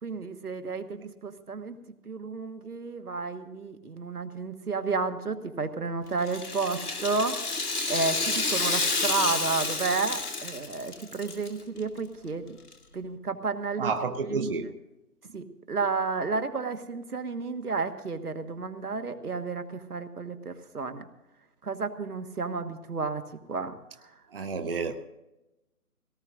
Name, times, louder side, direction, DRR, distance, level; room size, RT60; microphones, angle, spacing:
voice 1, 0.0-1.8 2.0-7.4 7.9-12.6 12.9-13.9 14.3-14.5 15.3-21.1 21.6-23.2 23.5-23.7, right 4 dB, 75° right, 7 dB, 1.5 m, -31 dB
Rattle (instrument), 6.2-11.5 11.8-11.9 12.7-12.8, left 3 dB, 80° left, 2.3 m, -29 dB
voice 2, 13.8-14.6 24.3-24.9, right 4 dB, 40° right, 5 dB, 0.9 m, -30 dB
21.0 x 18.0 x 2.6 m, 0.97 s
figure-of-eight pair, 150°, 45 cm